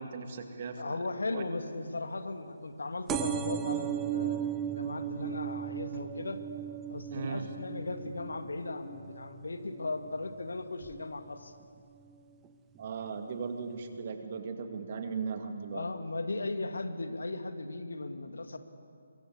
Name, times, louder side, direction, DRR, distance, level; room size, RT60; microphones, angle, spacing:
voice 1, 0.0-0.9 1.3-1.4 7.1-7.4 12.8-15.9, right 5 dB, 40° right, 6 dB, 2.3 m, -37 dB
voice 2, 0.8-6.4 6.9-11.5 15.7-18.6, left 2 dB, 65° left, 8 dB, 1.9 m, -37 dB
sound 1, 3.1-10.3 10.8-11.3 12.1-12.2 12.4-12.5 12.8-12.9, right 10 dB, 15° right, 0.8 m, -36 dB
24.5 x 22.5 x 8.3 m, 2.4 s
figure-of-eight pair, 145°, 0 cm